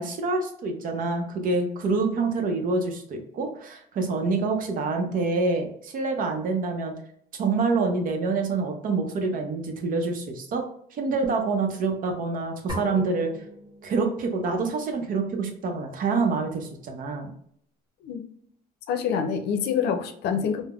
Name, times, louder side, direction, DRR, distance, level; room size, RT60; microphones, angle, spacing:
voice 1, 0.0-6.9 7.3-10.6 10.9-13.3 13.8-17.3, right 3 dB, 55° right, 4 dB, 0.7 m, -26 dB
sound 1, 12.7-14.5, equal, 25° right, 1.0 m, -39 dB
voice 2, 18.9-20.7, left 7 dB, 75° left, 6 dB, 0.5 m, -26 dB
3.4 x 2.1 x 2.3 m, 0.67 s
cardioid pair, 110°, 17 cm